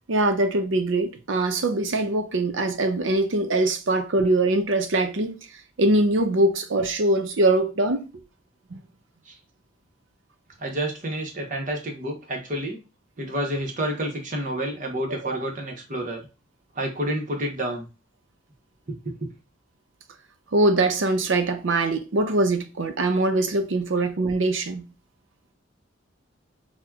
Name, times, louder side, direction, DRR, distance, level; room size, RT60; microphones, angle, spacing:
voice 1, 0.1-5.3 5.8-8.1 8.7-8.8 15.2-15.4 20.5-24.8, right 2 dB, 70° right, 0.6 m, -22 dB
voice 2, 10.6-12.8 13.2-16.2 16.7-17.9 18.9-19.1 24.0-24.1, right 1 dB, 40° right, 0.9 m, -29 dB
5.9 x 2.1 x 2.3 m
head